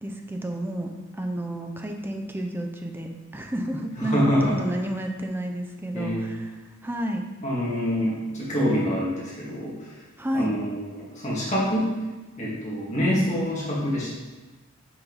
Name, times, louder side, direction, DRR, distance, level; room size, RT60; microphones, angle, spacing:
voice 1, 0.0-6.5 6.8-7.2 10.2-10.5 13.0-13.2, right 1 dB, 10° right, 3 dB, 0.5 m, -31 dB
voice 2, 4.0-4.6 5.9-6.4 7.4-9.9 10.3-11.9 12.4-14.1, equal, 35° left, -6 dB, 2.0 m, -26 dB
5.7 x 5.4 x 4.0 m, 1.2 s
head